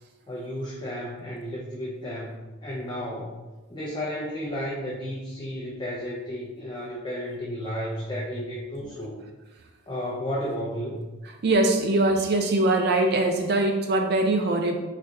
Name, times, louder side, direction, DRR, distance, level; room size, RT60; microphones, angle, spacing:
voice 1, 0.3-3.4 3.7-9.2 9.9-11.1, equal, 20° left, -5 dB, 0.4 m, -33 dB
voice 2, 11.4-14.7, right 2 dB, 50° right, 4 dB, 0.4 m, -22 dB
4.3 x 2.3 x 2.5 m, 1.2 s
head